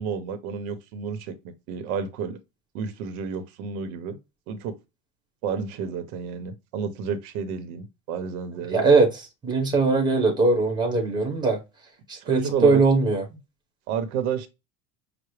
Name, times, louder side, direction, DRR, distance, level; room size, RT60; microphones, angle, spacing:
voice 1, 0.0-2.4 2.7-4.2 4.5-4.7 5.4-8.9 12.1-12.8 13.9-14.5, right 7 dB, 85° right, 0.9 m, -30 dB
voice 2, 8.7-11.6 12.1-13.2, right 3 dB, 10° right, 1.0 m, -21 dB
5.9 x 2.1 x 3.2 m
cardioid pair, 160°, 42 cm